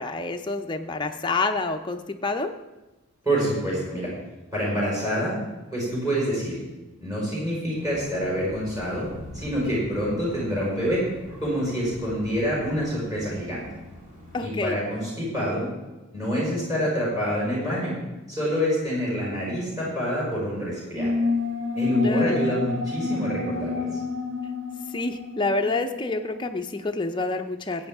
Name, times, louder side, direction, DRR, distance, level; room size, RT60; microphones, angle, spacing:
voice 1, 0.0-2.5 14.3-14.8 22.0-22.6 24.9-27.9, left 3 dB, 20° left, 5 dB, 0.6 m, -28 dB
voice 2, 3.2-4.1 4.5-5.4 5.7-6.6 7.0-9.1 9.3-11.0 11.4-13.6 14.4-15.7 16.1-17.9 18.3-21.1 21.7-23.9, equal, 15° right, -6 dB, 4.7 m, -26 dB
sound 1, 7.7-14.5, equal, 35° right, 2.7 m, -44 dB
sound 2, 21.0-26.2, left 3 dB, 65° right, 2.2 m, -28 dB
15.5 x 8.7 x 3.6 m, 1.1 s
head